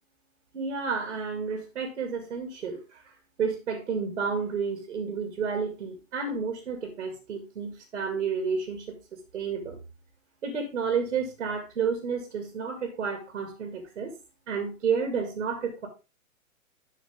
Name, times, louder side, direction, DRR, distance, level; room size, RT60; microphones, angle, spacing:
voice 1, 0.5-3.1 3.4-9.8 10.4-14.1 14.5-15.9, right 5 dB, 65° right, 5 dB, 2.3 m, -31 dB
11.5 x 4.7 x 3.5 m, 0.29 s
figure-of-eight pair, 115°, 43 cm